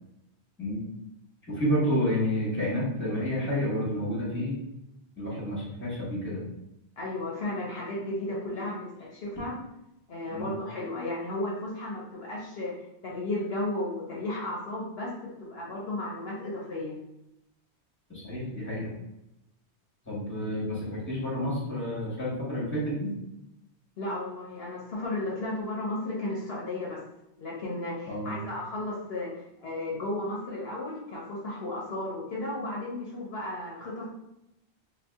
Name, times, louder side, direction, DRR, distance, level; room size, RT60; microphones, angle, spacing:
voice 1, 1.5-4.6 5.2-6.4 10.3-10.5 18.1-18.9 20.0-23.1 28.1-28.4, equal, 10° left, -7 dB, 1.2 m, -30 dB
voice 2, 7.0-9.6 10.1-12.8 13.0-17.0 24.0-27.0 27.4-34.1, left 2 dB, 65° left, -4 dB, 0.9 m, -34 dB
2.7 x 2.3 x 3.4 m, 0.87 s
omnidirectional pair, 1.1 m